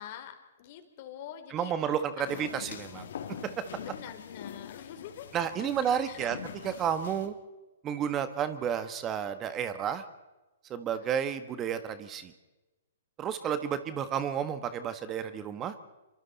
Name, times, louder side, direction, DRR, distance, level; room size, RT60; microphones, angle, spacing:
voice 1, 0.0-2.0 2.4-2.5 3.8-5.3 5.6-5.7 6.1-6.3 11.0-11.1, left 10 dB, 50° left, 7 dB, 3.6 m, -45 dB
voice 2, 1.5-3.1 3.4-3.5 5.3-6.4 6.6-7.3 7.8-10.0 10.7-12.3 13.2-15.7, right 8 dB, 25° right, 11 dB, 1.5 m, -31 dB
sound 1, 2.3-7.3, left 8 dB, 65° left, 2.6 m, -44 dB
26.5 x 24.0 x 4.2 m, 1.1 s
hypercardioid pair, 125°, 0 cm